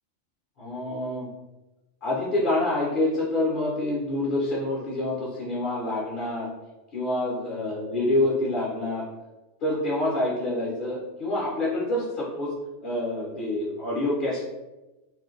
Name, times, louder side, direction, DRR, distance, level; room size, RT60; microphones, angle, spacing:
voice 1, 0.6-1.3 2.0-6.5 6.9-9.1 9.6-12.5 12.8-14.4, left 1 dB, 50° left, -4 dB, 0.7 m, -27 dB
2.4 x 2.2 x 3.7 m, 1.1 s
omnidirectional pair, 1.3 m